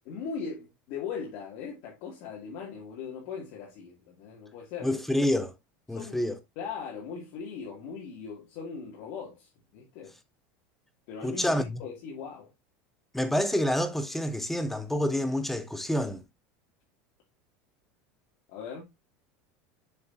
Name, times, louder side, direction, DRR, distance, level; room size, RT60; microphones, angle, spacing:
voice 1, 0.0-4.9 5.9-6.3 6.6-10.1 11.1-12.5 18.5-18.8, left 6 dB, 65° left, 2.6 m, -39 dB
voice 2, 4.8-5.5 5.9-6.3 11.2-11.8 13.1-16.2, left 1 dB, 5° left, 0.8 m, -28 dB
6.9 x 6.7 x 2.7 m
supercardioid pair, 135°, 6 cm